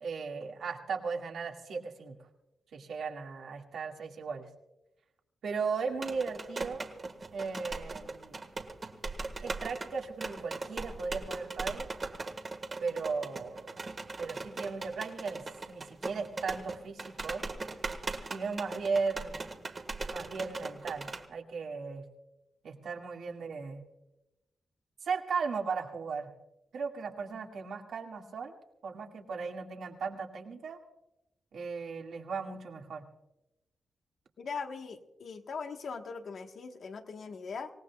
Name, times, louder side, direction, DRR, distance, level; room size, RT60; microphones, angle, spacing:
voice 1, 0.0-2.2 2.7-4.5 5.4-6.8 7.3-8.4 9.4-11.9 12.8-13.8 14.2-17.4 18.3-19.5 20.1-22.0 22.6-23.8 25.0-26.3 26.7-28.6 28.8-30.8 31.5-33.0, right 5 dB, 75° right, 2 dB, 2.0 m, -36 dB
sound 1, 5.9-21.2, right 3 dB, 35° right, 1.5 m, -40 dB
voice 2, 34.4-37.7, left 5 dB, 65° left, 5 dB, 1.3 m, -40 dB
26.0 x 18.0 x 2.4 m, 0.94 s
wide cardioid pair, 115°, 0 cm